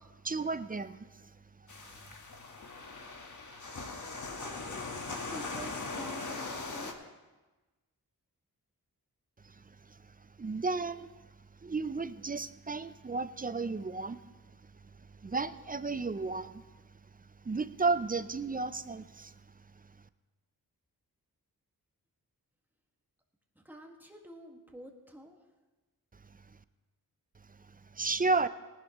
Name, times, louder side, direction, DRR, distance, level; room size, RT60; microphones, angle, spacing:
voice 1, 0.2-1.1 10.4-11.1 11.6-14.2 15.2-16.6 17.5-19.3 27.9-28.5, right 3 dB, 25° right, 14 dB, 0.4 m, -32 dB
sound 1, 1.7-6.9, left 3 dB, 50° left, 1.5 m, -40 dB
voice 2, 4.4-7.0 23.5-25.4, equal, 5° right, 1 dB, 1.8 m, -48 dB
18.5 x 11.0 x 3.0 m, 1.2 s
cardioid pair, 60°, 38 cm